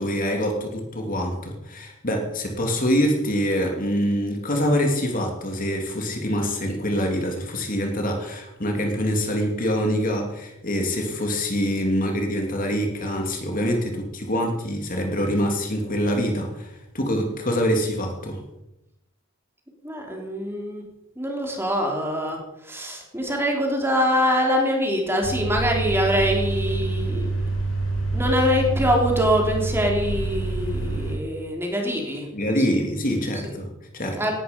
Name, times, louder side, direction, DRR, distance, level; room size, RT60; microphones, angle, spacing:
voice 1, 0.0-18.4 32.3-34.2, equal, 40° left, 2 dB, 2.6 m, -25 dB
voice 2, 19.8-20.8 21.2-27.5 28.1-32.3 33.4-33.5 34.2-34.3, equal, 10° right, 1 dB, 3.4 m, -24 dB
sound 1, 25.2-31.1, right 2 dB, 65° left, 4.6 m, -26 dB
18.0 x 12.0 x 5.3 m, 0.89 s
head